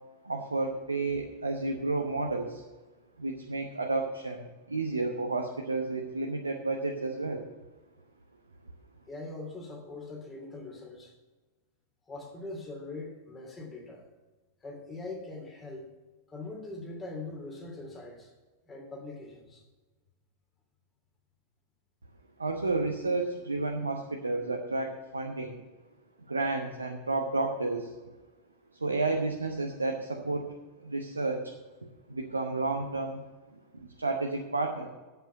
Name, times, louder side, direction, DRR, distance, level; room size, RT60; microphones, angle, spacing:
voice 1, 0.2-2.6 3.2-7.4 22.4-25.6 26.3-27.9 28.8-30.5 30.8-31.4 32.1-33.2 33.7-34.9, right 3 dB, 80° right, 2 dB, 0.9 m, -31 dB
voice 2, 9.1-11.1 12.1-14.1 14.6-15.9 16.3-18.3 18.7-19.6, left 2 dB, 20° left, 0 dB, 3.0 m, -42 dB
7.9 x 7.9 x 8.2 m, 1.2 s
figure-of-eight pair, 90°, 0 cm